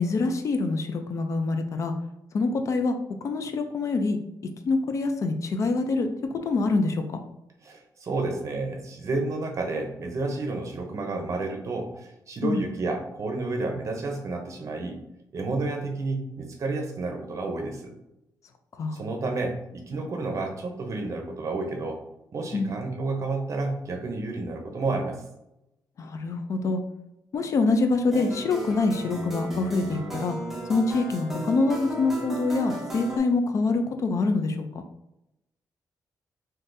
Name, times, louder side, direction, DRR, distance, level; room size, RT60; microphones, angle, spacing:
voice 1, 0.0-1.9 2.3-3.0 3.2-4.2 4.6-7.2 12.4-12.6 18.7-19.0 22.5-22.7 26.0-26.8 27.3-30.4 30.7-34.6, left 3 dB, 45° left, 6 dB, 0.3 m, -25 dB
voice 2, 7.6-15.0 15.3-17.9 18.9-22.0 22.3-25.2, right 3 dB, 45° right, 3 dB, 0.6 m, -30 dB
sound 1, 28.1-33.2, right 1 dB, 5° right, 0.6 m, -35 dB
3.8 x 2.6 x 2.5 m, 0.85 s
wide cardioid pair, 170°, 7 cm